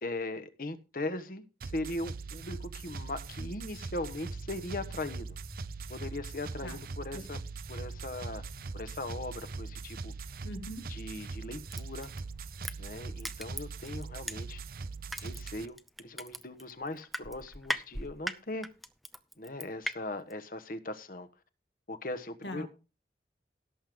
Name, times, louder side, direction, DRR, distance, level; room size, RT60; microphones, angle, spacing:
voice 1, 0.0-5.4 5.9-7.4 7.7-8.4 8.7-10.1 10.9-12.1 12.8-14.6 15.2-18.7 19.4-21.3 21.9-22.7, left 2 dB, 50° left, 1.2 m, -39 dB
sound 1, 1.6-15.7, right 4 dB, 55° right, 0.5 m, -41 dB
sound 2, 4.1-12.7, equal, 35° left, 1.9 m, -51 dB
voice 2, 10.4-10.9 22.4-22.7, equal, 85° left, 2.2 m, -41 dB
Crushing, 11.7-14.7 15.1-19.9 20.3-20.4, equal, ahead, 0.7 m, -38 dB
17.0 x 7.7 x 3.6 m
head